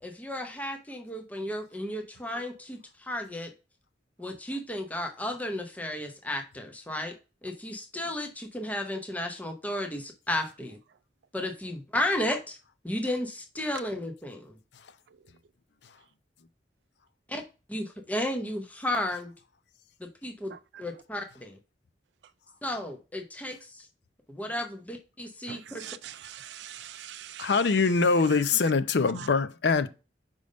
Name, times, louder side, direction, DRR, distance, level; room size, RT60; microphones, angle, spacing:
voice 1, 0.0-3.5 4.2-7.1 7.4-10.8 11.3-12.6 12.8-14.6 17.3-17.4 17.7-19.3 20.0-20.5 20.8-21.6 22.6-23.9 24.3-25.8, left 1 dB, 10° left, 0.7 m, -33 dB
voice 2, 25.5-27.5, right 11 dB, 70° right, 0.3 m, -43 dB
voice 3, 27.4-29.9, left 4 dB, 70° left, 0.5 m, -23 dB
5.3 x 3.5 x 5.1 m
head